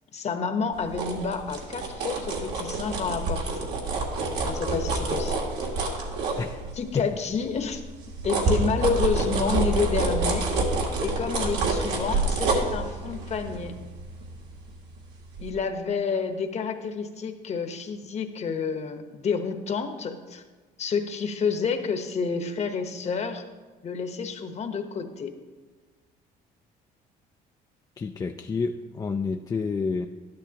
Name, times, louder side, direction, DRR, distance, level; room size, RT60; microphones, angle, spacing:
voice 1, 0.1-3.7 4.4-5.4 6.7-7.8 8.2-10.5 11.0-13.7 15.4-20.4 20.8-23.4 23.8-25.3, left 5 dB, 40° left, 7 dB, 1.0 m, -29 dB
sound 1, 0.7-7.0 7.4-15.0 15.3-15.5, right 3 dB, 80° right, 1.9 m, -28 dB
voice 2, 28.0-30.1, left 4 dB, 20° left, 5 dB, 0.4 m, -29 dB
12.0 x 10.5 x 2.9 m, 1.3 s
cardioid pair, 110°, 17 cm